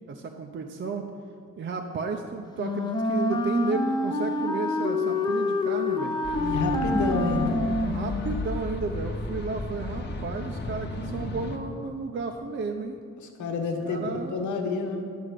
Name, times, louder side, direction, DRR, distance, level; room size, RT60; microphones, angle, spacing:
voice 1, 0.1-1.1 1.6-6.2 7.8-13.0 13.8-14.5, right 4 dB, 40° right, 3 dB, 0.6 m, -33 dB
Wind instrument woodwind instrument, 2.5-8.5, left 2 dB, 15° left, 0.7 m, -27 dB
sound 1, 6.2-11.6, left 2 dB, 35° left, 1.1 m, -34 dB
voice 2, 6.4-7.6 13.4-15.0, left 3 dB, 75° left, 4 dB, 1.2 m, -28 dB
10.0 x 4.8 x 6.5 m, 2.2 s
cardioid pair, 90°, 30 cm